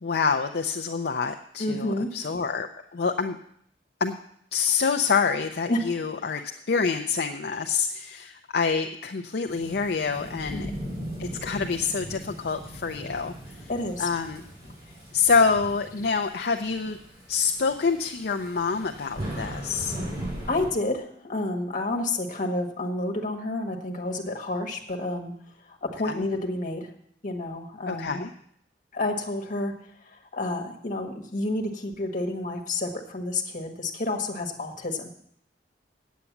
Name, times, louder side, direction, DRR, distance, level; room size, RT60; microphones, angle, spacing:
voice 1, 0.0-3.4 4.0-4.2 4.5-6.4 6.7-10.7 11.2-13.7 14.0-14.4 15.1-17.0 17.3-20.0 26.0-26.3 27.8-28.3, left 5 dB, 65° left, 5 dB, 0.6 m, -26 dB
voice 2, 1.6-2.1 5.7-5.9 10.5-10.8 13.7-14.1 20.5-25.3 25.7-26.9 27.2-28.2 28.9-29.7 30.3-35.1, left 2 dB, 50° left, 3 dB, 1.5 m, -29 dB
Thunderstorm / Rain, 9.5-20.7, equal, 25° right, 6.3 m, -39 dB
8.9 x 8.3 x 7.1 m, 0.68 s
head